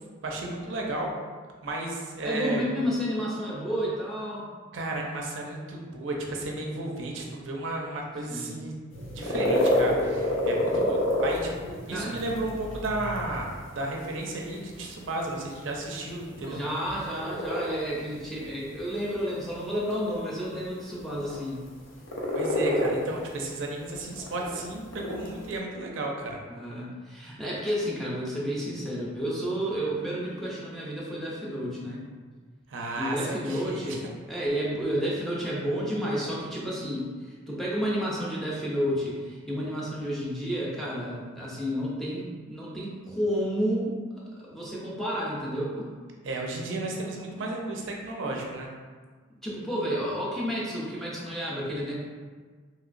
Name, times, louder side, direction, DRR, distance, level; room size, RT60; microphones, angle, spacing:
voice 1, 0.2-1.1 1.6-2.6 4.7-8.8 9.1-13.4 13.7-16.6 22.3-26.4 32.7-33.2 33.4-34.0 46.2-48.7, right 2 dB, 70° right, 0 dB, 0.5 m, -33 dB
voice 2, 2.2-4.5 8.3-8.6 11.9-12.2 16.5-21.6 26.5-32.1 33.0-43.9 44.3-45.9 49.4-52.0, equal, ahead, -6 dB, 0.5 m, -31 dB
sound 1, 8.9-25.6, left 1 dB, 75° left, 0.6 m, -30 dB
3.0 x 2.8 x 2.5 m, 1.5 s
head